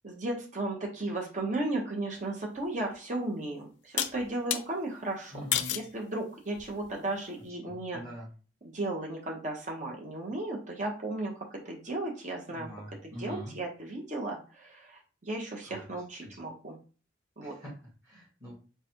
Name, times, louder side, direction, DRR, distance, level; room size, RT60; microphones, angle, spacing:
voice 1, 0.0-5.3 5.7-8.0 8.6-12.7 13.0-16.8 17.4-17.5, right 2 dB, 40° right, -1 dB, 1.0 m, -35 dB
sound 1, 2.6-2.7 4.0-4.6 5.5-5.9 6.6-7.0, left 11 dB, 70° left, 0.4 m, -31 dB
voice 2, 5.3-5.7 7.6-8.3 12.5-13.5 15.6-15.8 16.3-16.4 17.4-17.7 18.0-18.5, equal, 15° right, -7 dB, 2.0 m, -43 dB
4.0 x 2.4 x 4.4 m, 0.36 s
head